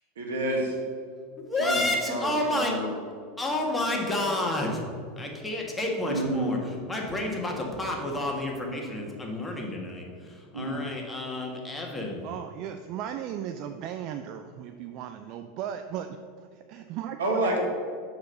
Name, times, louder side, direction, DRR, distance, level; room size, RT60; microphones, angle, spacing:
voice 1, 0.2-0.8 1.6-2.9 6.1-6.5 10.5-10.8 17.2-17.6, right 1 dB, 75° right, 1 dB, 1.6 m, -29 dB
voice 2, 1.4-2.8 3.4-4.8 5.2-12.2, left 1 dB, 15° left, 0 dB, 1.6 m, -30 dB
voice 3, 12.2-17.2, right 9 dB, 50° right, 8 dB, 0.4 m, -36 dB
6.5 x 4.8 x 6.6 m, 2.1 s
figure-of-eight pair, 85°, 0 cm